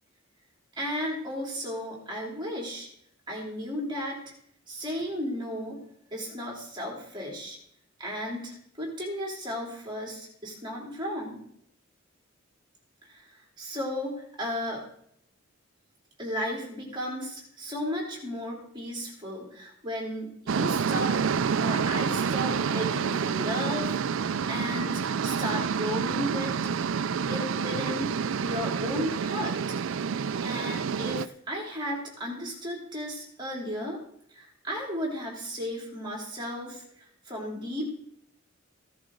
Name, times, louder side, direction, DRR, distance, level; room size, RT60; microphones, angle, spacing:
voice 1, 0.8-2.9 3.3-4.2 4.7-5.8 6.1-7.6 8.0-11.4 13.0-14.8 16.2-21.2 21.6-26.5 27.3-29.7 30.4-34.0 34.3-37.9, equal, 20° right, -2 dB, 3.4 m, -34 dB
sound 1, 20.5-31.3, right 6 dB, 60° right, 0.4 m, -28 dB
16.0 x 11.0 x 3.9 m, 0.68 s
head